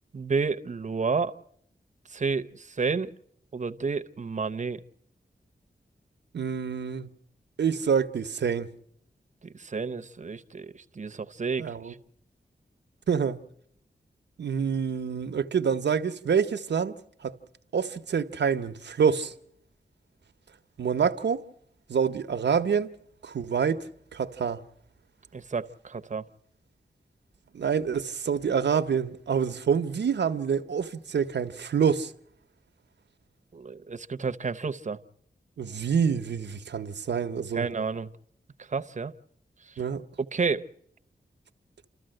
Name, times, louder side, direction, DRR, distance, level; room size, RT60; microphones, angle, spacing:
voice 1, 0.1-1.3 2.1-3.1 3.5-4.8 9.5-12.0 25.3-26.2 33.5-35.0 37.5-38.1 38.6-39.1 39.7-39.8 40.3-40.7, right 4 dB, 45° right, 0.8 m, -30 dB
voice 2, 6.3-7.1 7.6-8.7 11.6-11.9 13.1-13.4 14.4-17.0 17.2-17.3 17.7-19.3 20.8-21.4 21.9-22.9 23.2-24.6 27.5-32.1 35.6-37.7 39.8-40.0, right 6 dB, 85° right, 0.8 m, -27 dB
29.5 x 13.5 x 7.7 m
wide cardioid pair, 110°, 18 cm